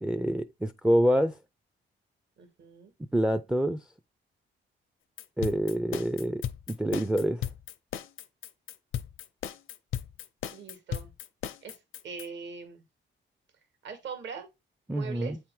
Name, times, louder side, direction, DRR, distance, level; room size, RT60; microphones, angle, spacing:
voice 1, 0.0-1.4 3.1-3.9 5.4-6.4 6.7-7.5 14.9-15.4, equal, 5° right, 0.4 m, -26 dB
voice 2, 2.4-2.9 10.5-11.1 11.6-11.8 12.0-12.8 13.8-14.5 14.9-15.4, right 6 dB, 65° right, 2.0 m, -41 dB
sound 1, 5.2-12.3, left 10 dB, 85° left, 0.6 m, -36 dB
8.4 x 3.4 x 4.6 m
cardioid pair, 125°, 20 cm